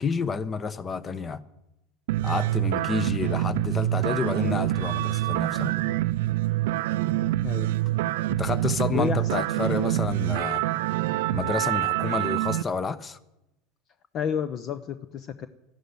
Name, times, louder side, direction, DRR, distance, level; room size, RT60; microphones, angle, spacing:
voice 1, 0.0-1.4 2.2-5.8 8.3-10.6 11.3-13.2, left 5 dB, 30° left, 1.1 m, -29 dB
sound 1, 2.1-12.6, right 16 dB, 70° right, 0.5 m, -26 dB
voice 2, 7.4-7.7 8.9-9.3 14.1-15.5, left 7 dB, 45° left, 0.8 m, -30 dB
13.5 x 11.5 x 9.2 m
hypercardioid pair, 75°, 0 cm